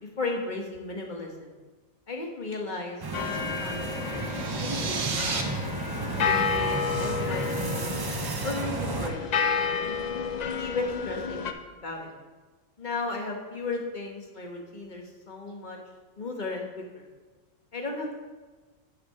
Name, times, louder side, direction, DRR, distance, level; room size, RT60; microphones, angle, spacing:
voice 1, 0.2-1.5 2.1-4.3 4.6-5.0 5.2-5.4 6.2-7.9 8.4-9.2 10.5-12.1 12.8-15.8 16.2-16.7 16.9-17.0 17.7-18.1, left 3 dB, 35° left, 1 dB, 1.3 m, -35 dB
sound 1, 3.0-9.1, right 3 dB, 35° right, 0.3 m, -33 dB
sound 2, 3.1-11.5, left 6 dB, 70° left, 0.4 m, -31 dB
sound 3, 4.2-5.4, right 5 dB, 60° right, 1.1 m, -32 dB
6.8 x 5.5 x 5.6 m, 1.3 s
omnidirectional pair, 1.4 m